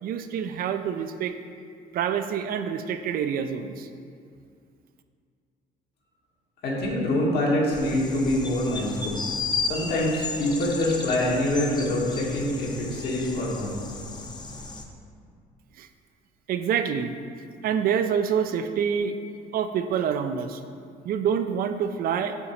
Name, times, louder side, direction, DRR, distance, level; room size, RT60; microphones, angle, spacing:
voice 1, 0.0-1.3 1.9-3.9 15.8-15.9 16.5-17.1 17.6-19.2 19.5-20.6 21.0-22.3, right 8 dB, 60° right, 8 dB, 0.4 m, -26 dB
voice 2, 6.6-9.2 9.7-13.7, left 1 dB, 70° left, -4 dB, 1.6 m, -25 dB
sound 1, 7.7-14.8, left 4 dB, 25° left, 0.6 m, -34 dB
7.0 x 3.7 x 4.5 m, 2.3 s
cardioid pair, 110°, 17 cm